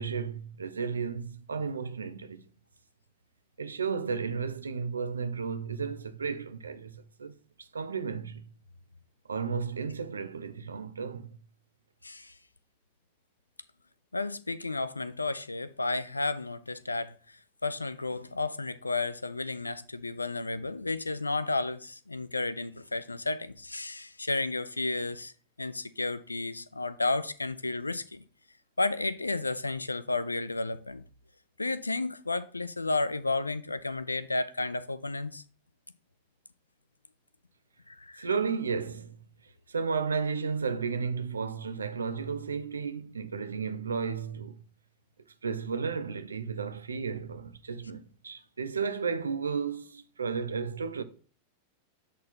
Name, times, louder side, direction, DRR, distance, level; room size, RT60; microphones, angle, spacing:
voice 1, 0.0-2.4 3.6-8.4 9.3-11.4 38.2-39.2 39.7-44.6 45.4-51.0, right 5 dB, 75° right, 0.6 m, -33 dB
voice 2, 12.0-12.3 14.1-25.3 25.6-28.2 28.8-31.0 31.6-35.4 37.9-38.3, left 3 dB, 80° left, 0.4 m, -32 dB
7.2 x 4.3 x 4.2 m
figure-of-eight pair, 90°, 0 cm